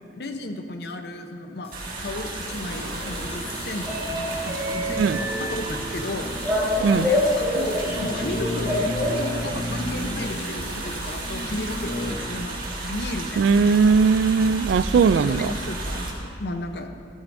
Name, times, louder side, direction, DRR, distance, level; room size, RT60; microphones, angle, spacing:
voice 1, 0.1-6.4 6.8-8.8 9.2-13.7 14.9-16.9, left 2 dB, 65° left, 6 dB, 0.8 m, -34 dB
sound 1, 1.6-12.3 12.6-12.7, left 1 dB, 35° left, 0.6 m, -35 dB
sound 2, 1.7-16.1, right 2 dB, 50° right, 1.8 m, -33 dB
sound 3, 2.7-9.7, left 1 dB, 10° right, 1.7 m, -27 dB
voice 2, 13.4-15.5, right 5 dB, 80° right, 16 dB, 0.3 m, -19 dB
14.0 x 13.0 x 2.7 m, 2.3 s
head